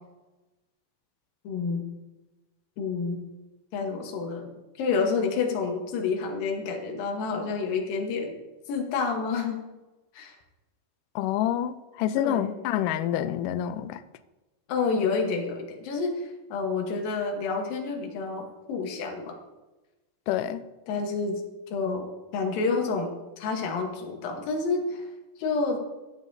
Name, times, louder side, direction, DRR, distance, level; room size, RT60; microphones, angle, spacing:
voice 1, 1.4-1.8 2.8-3.3 3.7-4.5 4.8-8.3 8.7-9.6 10.1-10.4 12.2-12.6 14.7-19.4 20.9-21.4 21.7-23.1 23.4-25.1 25.4-25.8, left 4 dB, 70° left, 2.9 m, -29 dB
voice 2, 11.2-14.0 20.3-20.6, left 11 dB, 90° left, 1.8 m, -27 dB
13.0 x 8.9 x 2.7 m
omnidirectional pair, 4.3 m